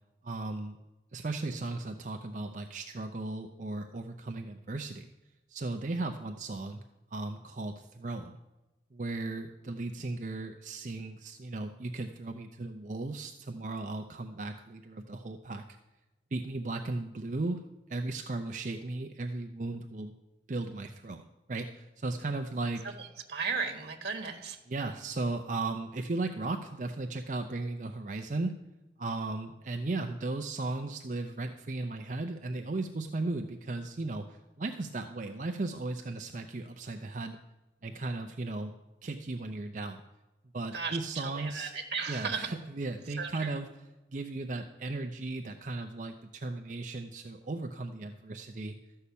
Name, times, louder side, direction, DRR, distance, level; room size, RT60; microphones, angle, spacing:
voice 1, 0.2-0.8 1.1-5.1 5.5-6.8 7.1-8.3 8.9-15.6 16.3-17.6 17.9-20.1 20.5-22.8 24.7-28.5 29.0-37.4 37.8-38.7 39.0-40.0 40.5-41.7 42.1-43.7 44.1-48.7, right 2 dB, 45° right, 5 dB, 0.6 m, -36 dB
voice 2, 22.8-24.6 40.7-42.5 43.2-43.5, right 5 dB, 65° right, 3 dB, 1.2 m, -35 dB
13.0 x 5.6 x 8.4 m, 1.0 s
head